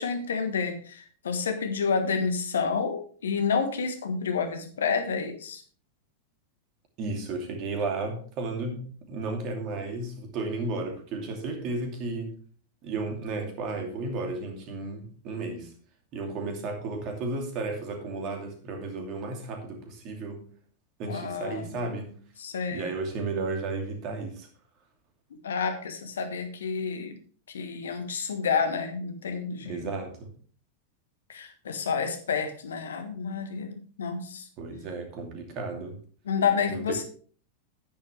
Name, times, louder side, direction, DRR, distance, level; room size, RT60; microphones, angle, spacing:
voice 1, 0.0-5.6 21.0-21.7 22.4-22.9 25.3-27.1 27.5-29.8 31.3-34.5 36.2-37.0, left 5 dB, 65° left, 8 dB, 1.3 m, -29 dB
voice 2, 7.0-12.3 12.8-15.7 16.1-20.4 21.0-22.1 22.7-24.5 29.6-30.3 34.6-36.0 36.7-36.8, right 3 dB, 40° right, 3 dB, 2.6 m, -33 dB
10.0 x 9.7 x 3.3 m, 0.43 s
figure-of-eight pair, 90°, 0 cm